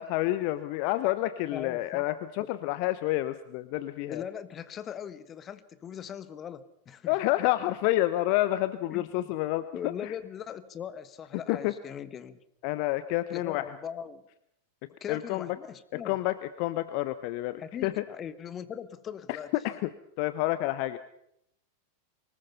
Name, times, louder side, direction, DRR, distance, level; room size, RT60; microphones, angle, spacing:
voice 1, 0.0-4.2 7.1-10.1 11.5-11.7 12.6-13.6 15.1-15.5 15.9-18.0 19.5-19.9 20.2-21.0, left 16 dB, 45° left, 14 dB, 0.8 m, -29 dB
voice 2, 1.5-2.0 4.1-7.2 8.9-9.1 9.7-12.4 13.3-14.2 15.0-16.2 17.6-19.5, left 8 dB, 25° left, 14 dB, 1.4 m, -40 dB
24.0 x 20.5 x 5.7 m, 0.76 s
figure-of-eight pair, 90°, 0 cm